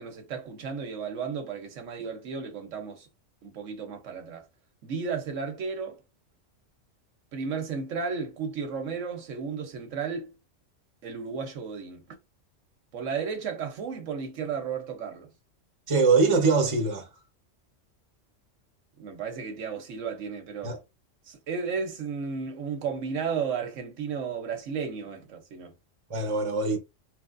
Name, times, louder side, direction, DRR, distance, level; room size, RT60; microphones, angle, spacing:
voice 1, 0.0-3.1 3.4-4.5 4.8-6.0 7.3-10.3 11.0-12.0 12.9-15.3 19.0-20.7 21.3-25.7, right 6 dB, 85° right, 1.2 m, -33 dB
voice 2, 15.9-17.1 20.6-20.8 26.1-26.8, right 4 dB, 25° right, 1.0 m, -23 dB
4.4 x 3.1 x 2.5 m
omnidirectional pair, 1.3 m